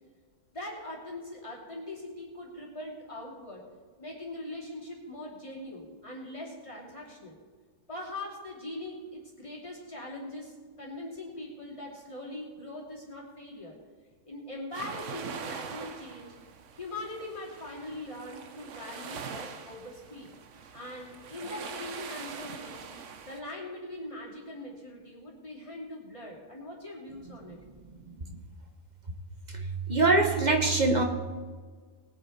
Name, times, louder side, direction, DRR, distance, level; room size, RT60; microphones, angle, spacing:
voice 1, 0.5-3.6 4.0-7.4 7.9-13.8 14.2-16.4 16.8-20.3 20.7-22.9 23.2-27.6, left 1 dB, 25° left, -4 dB, 3.0 m, -41 dB
sound 1, 14.7-23.4, right 6 dB, 70° right, 1.2 m, -43 dB
voice 2, 29.5-31.0, right 3 dB, 35° right, 4 dB, 1.2 m, -24 dB
20.0 x 7.8 x 4.3 m, 1.5 s
omnidirectional pair, 1.3 m